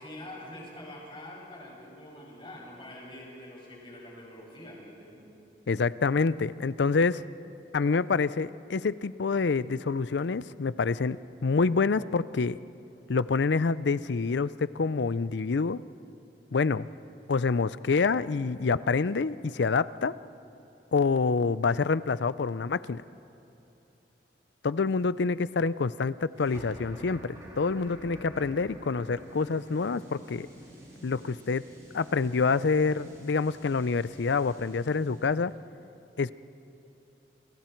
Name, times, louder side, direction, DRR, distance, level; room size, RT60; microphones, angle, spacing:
voice 1, 0.0-5.2, left 1 dB, 30° left, -3 dB, 6.3 m, -45 dB
voice 2, 5.7-7.2 7.7-12.6 13.1-15.8 16.5-16.9 17.3-20.1 20.9-23.0 24.6-30.5 31.0-31.6 31.9-35.5 36.2-36.3, left 4 dB, 80° left, 17 dB, 0.5 m, -27 dB
sound 1, 26.3-35.5, equal, 20° right, 7.2 m, -49 dB
29.0 x 27.0 x 4.5 m, 2.8 s
head